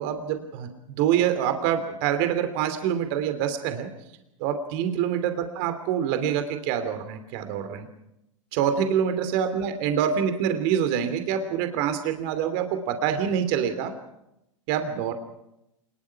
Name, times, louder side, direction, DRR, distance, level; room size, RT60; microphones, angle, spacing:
voice 1, 0.0-3.9 4.4-7.9 8.5-13.9 14.7-15.1, right 9 dB, 50° right, 8 dB, 2.9 m, -26 dB
26.0 x 21.0 x 5.9 m, 0.86 s
hypercardioid pair, 95°, 16 cm